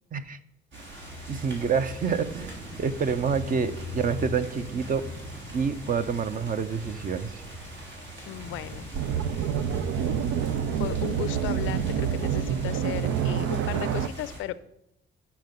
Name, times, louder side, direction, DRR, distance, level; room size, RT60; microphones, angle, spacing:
sound 1, 0.7-14.4, equal, 70° right, 3.1 m, -40 dB
voice 1, 1.3-5.1 5.5-7.4, right 6 dB, 45° right, 11 dB, 0.7 m, -28 dB
voice 2, 8.3-8.9 10.0-10.1 10.8-14.6, left 13 dB, 85° left, 16 dB, 0.5 m, -35 dB
sound 2, 8.9-14.1, right 8 dB, 90° right, 0.5 m, -27 dB
9.3 x 5.8 x 5.3 m, 0.85 s
cardioid pair, 90°, 20 cm